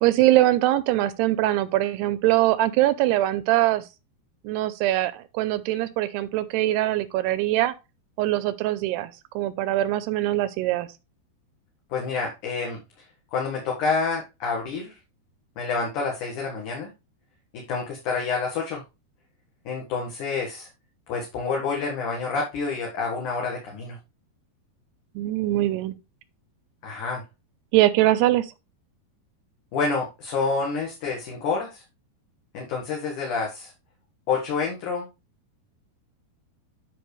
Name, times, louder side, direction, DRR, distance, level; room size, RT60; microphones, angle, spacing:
voice 1, 0.0-3.8 4.4-7.7 8.2-10.9 25.2-26.0 27.7-28.5, right 15 dB, 85° right, 2.7 m, -22 dB
voice 2, 11.9-12.8 13.3-15.0 15.6-16.9 17.5-18.8 19.7-20.7 21.1-23.9 26.8-27.2 29.7-31.8 32.5-33.7 34.3-35.1, left 4 dB, 55° left, 2.8 m, -28 dB
10.0 x 5.8 x 3.2 m
omnidirectional pair, 4.8 m